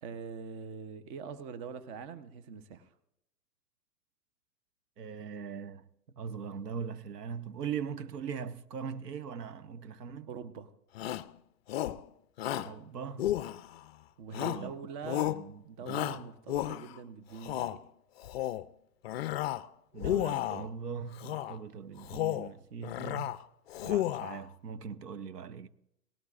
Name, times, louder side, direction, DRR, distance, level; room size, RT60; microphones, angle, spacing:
voice 1, 0.0-2.9 10.3-10.7 14.2-15.4 15.6-17.9, right 6 dB, 35° right, 0.8 m, -43 dB
voice 2, 5.0-5.9 6.1-10.3 12.5-13.3 14.4-14.7 15.3-16.3 19.9-23.4 23.8-25.7, right 7 dB, 80° right, 0.9 m, -40 dB
Shout, 10.9-11.3 11.7-12.0 12.4-12.7 13.2-13.9 14.3-14.7 15.0-15.4 15.9-17.0 17.4-17.8 18.2-18.7 19.0-19.7 20.0-20.7 21.2-21.6 22.0-22.5 22.8-23.4 23.7-24.4, left 13 dB, 45° left, 0.4 m, -33 dB
18.5 x 17.5 x 2.5 m
hypercardioid pair, 120°, 47 cm